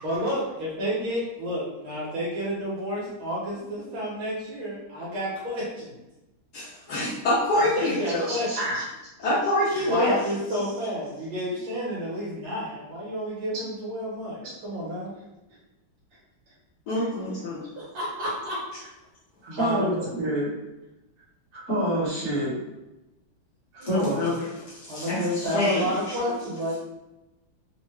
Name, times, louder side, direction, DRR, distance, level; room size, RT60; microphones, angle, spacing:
voice 1, 0.0-6.0 7.5-8.5 9.8-15.1 17.8-18.6 19.5-20.1 23.8-23.9 24.9-26.8, equal, 70° right, -8 dB, 1.6 m, -30 dB
voice 2, 6.5-8.3 8.7-8.8 9.2-10.2 16.9-17.6 23.8-24.4 24.7-26.2, left 1 dB, 75° left, -6 dB, 0.9 m, -26 dB
voice 3, 8.3-8.8 19.5-20.5 21.5-22.6 23.7-24.4, right 1 dB, 35° right, -9 dB, 1.4 m, -27 dB
3.7 x 2.1 x 3.1 m, 0.98 s
omnidirectional pair, 2.4 m